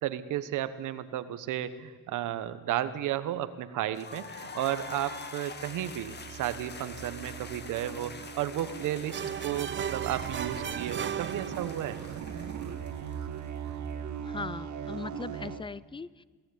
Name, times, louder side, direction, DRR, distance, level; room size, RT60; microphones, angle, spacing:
voice 1, 0.0-12.0, right 12 dB, 85° right, 13 dB, 1.3 m, -33 dB
sound 1, 3.9-13.7, left 4 dB, 35° left, 2.0 m, -45 dB
sound 2, 4.2-15.6, right 8 dB, 70° right, 2.0 m, -40 dB
sound 3, 9.1-12.1, right 8 dB, 40° right, 0.6 m, -36 dB
voice 2, 14.2-16.2, left 4 dB, 15° left, 20 dB, 0.6 m, -39 dB
22.0 x 16.5 x 9.6 m, 1.4 s
cardioid pair, 90°, 30 cm